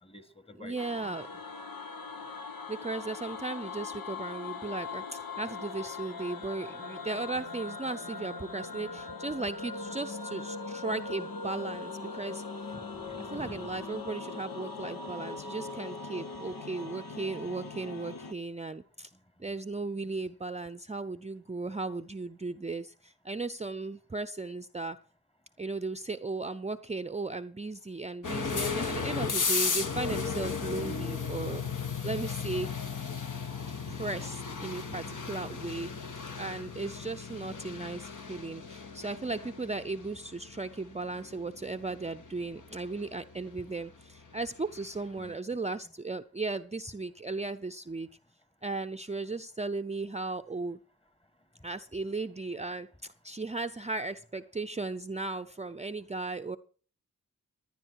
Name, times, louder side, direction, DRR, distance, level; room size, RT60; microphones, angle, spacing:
voice 1, 0.0-0.8 1.1-1.2 12.7-13.6 34.8-35.2 37.4-37.9 45.2-45.3, left 1 dB, 15° left, 13 dB, 1.4 m, -49 dB
voice 2, 0.6-1.3 2.7-12.7 13.2-19.1 19.4-25.0 25.6-32.7 33.7-36.0 36.4-48.1 48.6-50.8 51.6-56.6, right 3 dB, 20° right, 7 dB, 0.6 m, -36 dB
sound 1, 0.8-18.3, left 4 dB, 85° left, 1.2 m, -40 dB
sound 2, 28.2-45.0, left 5 dB, 60° left, 1.4 m, -35 dB
17.5 x 10.5 x 4.7 m, 0.42 s
cardioid pair, 40°, 34 cm